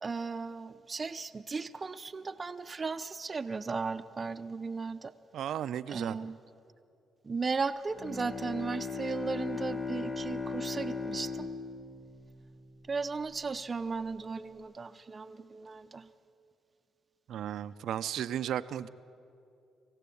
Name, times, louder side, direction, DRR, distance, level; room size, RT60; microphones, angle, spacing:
voice 1, 0.0-5.1 5.9-6.4 7.2-11.5 12.9-16.1, right 4 dB, 30° right, 11 dB, 0.7 m, -36 dB
voice 2, 5.3-6.2 17.3-18.9, right 10 dB, 75° right, 13 dB, 0.6 m, -34 dB
Bowed string instrument, 7.9-13.0, left 4 dB, 35° left, 3.6 m, -38 dB
22.0 x 15.5 x 8.5 m, 2.6 s
cardioid pair, 90°, 0 cm